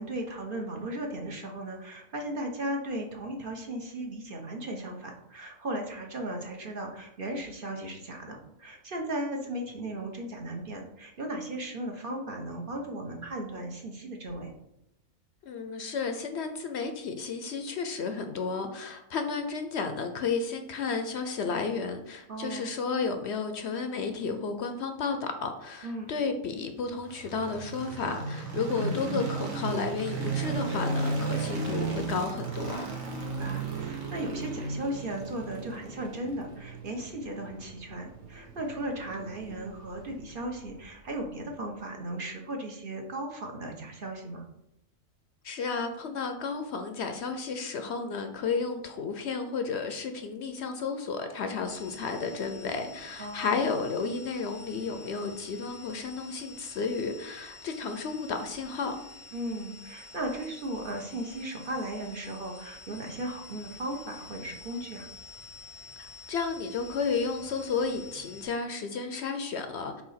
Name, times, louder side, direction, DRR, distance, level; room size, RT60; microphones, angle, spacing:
voice 1, 0.0-14.5 22.3-22.7 25.8-26.1 33.2-44.4 53.2-53.6 59.3-65.1, right 1 dB, 45° right, 2 dB, 1.0 m, -36 dB
voice 2, 15.4-32.9 45.4-59.0 66.0-70.0, left 5 dB, 65° left, 6 dB, 0.8 m, -32 dB
sound 1, 27.0-41.1, right 3 dB, 90° right, 1.6 m, -35 dB
sound 2, 51.6-68.5, left 3 dB, 65° right, 1.5 m, -49 dB
4.8 x 4.0 x 5.6 m, 0.83 s
omnidirectional pair, 1.4 m